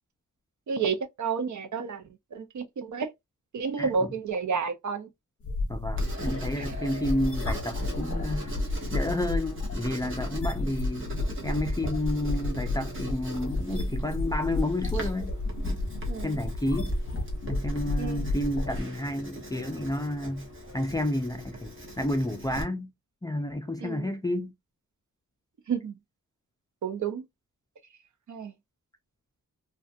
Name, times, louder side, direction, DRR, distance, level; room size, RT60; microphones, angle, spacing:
voice 1, 0.7-2.0 2.3-3.1 3.5-5.1 16.1-16.4 18.0-18.3 23.8-24.1 25.7-26.0 26.8-27.2 28.3-28.5, right 5 dB, 60° right, 0.5 m, -30 dB
sound 1, 5.4-18.8, left 2 dB, 45° left, 0.6 m, -31 dB
voice 2, 5.7-8.5 8.9-11.1 11.4-15.3 15.6-15.8 16.2-16.9 17.5-22.9 23.2-24.5, left 1 dB, 10° left, 0.3 m, -31 dB
Writing, 6.0-22.6, right 1 dB, 40° right, 0.9 m, -41 dB
2.5 x 2.2 x 2.5 m
wide cardioid pair, 115°, 33 cm